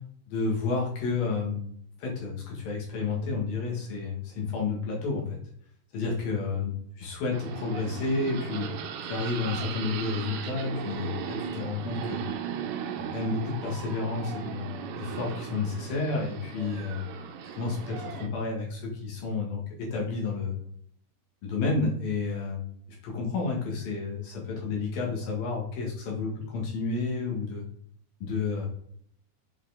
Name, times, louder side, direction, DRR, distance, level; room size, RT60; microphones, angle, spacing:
voice 1, 0.3-1.7 2.0-5.4 5.9-8.7 9.0-12.2 13.0-17.1 17.5-20.6 21.4-22.7 23.0-27.6 28.2-28.7, left 4 dB, 65° left, -2 dB, 3.0 m, -31 dB
sound 1, 7.3-18.3, right 8 dB, 80° right, 2.7 m, -37 dB
8.0 x 4.6 x 3.9 m, 0.66 s
omnidirectional pair, 5.2 m